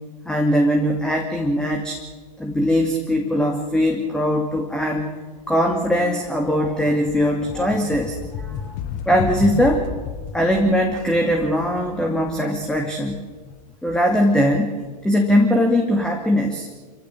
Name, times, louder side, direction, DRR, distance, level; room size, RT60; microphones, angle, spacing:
voice 1, 0.3-2.0 2.4-5.1 5.5-8.7 9.1-9.8 10.3-13.2 13.8-14.7 15.0-16.7, equal, 5° left, 2 dB, 2.4 m, -20 dB
sound 1, 5.1-5.2 5.5-14.4, left 8 dB, 40° left, 1.6 m, -33 dB
26.0 x 16.0 x 7.7 m, 1.4 s
hypercardioid pair, 110°, 20 cm